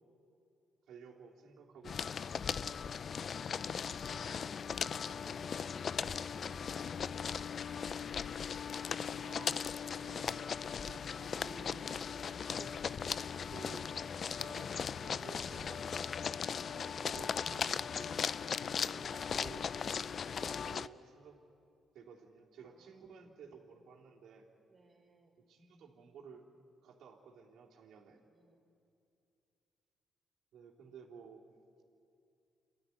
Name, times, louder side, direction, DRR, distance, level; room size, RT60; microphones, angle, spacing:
voice 1, 0.9-2.5 9.1-10.5 10.9-12.8 13.5-14.0 14.4-15.9 16.7-19.7 20.4-21.4 21.9-24.5 25.5-26.5 26.8-28.3 30.5-31.4, right 6 dB, 75° right, -3 dB, 3.4 m, -55 dB
sound 1, 1.8-20.9, left 6 dB, 50° left, 0.4 m, -38 dB
voice 2, 2.7-7.7 22.6-23.1 24.7-25.3 28.3-28.6 30.8-30.9, right 3 dB, 40° right, -4 dB, 4.5 m, -64 dB
28.5 x 13.0 x 9.9 m, 2.5 s
cardioid pair, 90°, 0 cm